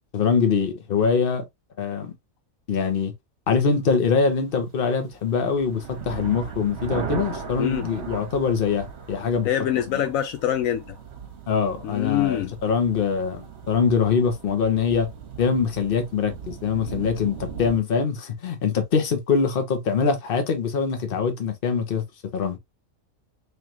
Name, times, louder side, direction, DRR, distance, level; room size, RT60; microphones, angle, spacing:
voice 1, 0.1-1.4 1.8-2.1 2.7-3.1 3.5-9.5 9.9-10.0 11.5-15.1 15.4-22.0 22.3-22.6, left 5 dB, 45° left, 1.0 m, -23 dB
sound 1, 5.0-17.8, right 7 dB, 55° right, 1.2 m, -38 dB
voice 2, 9.4-11.0 11.8-12.5, left 11 dB, 75° left, 1.0 m, -25 dB
3.7 x 3.3 x 2.9 m
omnidirectional pair, 1.5 m